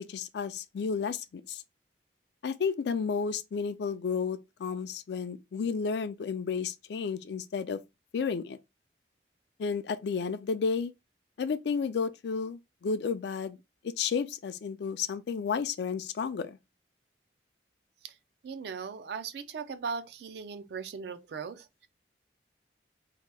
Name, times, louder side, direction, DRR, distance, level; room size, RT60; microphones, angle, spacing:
voice 1, 0.1-1.6 2.4-7.8 8.1-8.6 9.6-10.9 11.4-13.6 13.8-16.6, left 5 dB, 70° left, 0.3 m, -32 dB
voice 2, 18.4-21.9, right 5 dB, 70° right, 0.4 m, -38 dB
2.8 x 2.2 x 3.2 m
head